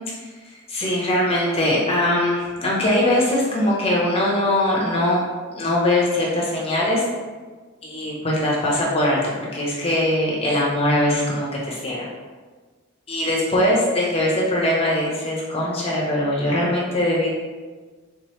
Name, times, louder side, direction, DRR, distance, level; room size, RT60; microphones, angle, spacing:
voice 1, 0.7-5.2 5.5-7.0 7.8-12.1 13.1-17.3, left 1 dB, 25° left, -5 dB, 0.8 m, -21 dB
3.5 x 3.0 x 3.1 m, 1.4 s
head